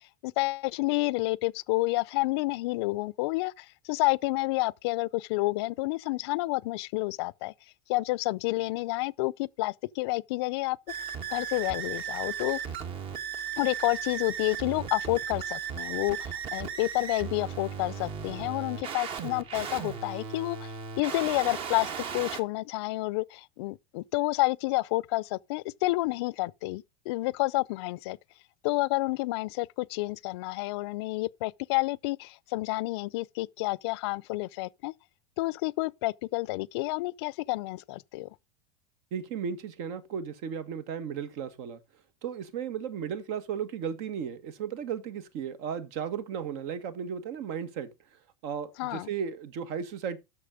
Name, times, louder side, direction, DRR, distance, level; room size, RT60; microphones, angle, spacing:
voice 1, 0.2-7.5 7.9-10.8 11.3-12.6 13.6-28.2 28.6-34.9 35.4-38.3 48.8-49.1, left 21 dB, 70° left, 0.5 m, -29 dB
sound 1, 10.9-22.4, right 7 dB, 40° right, 1.5 m, -36 dB
voice 2, 39.1-41.8 42.2-47.9 48.4-50.2, right 7 dB, 60° right, 1.7 m, -35 dB
8.5 x 6.6 x 5.0 m
supercardioid pair, 130°, 14 cm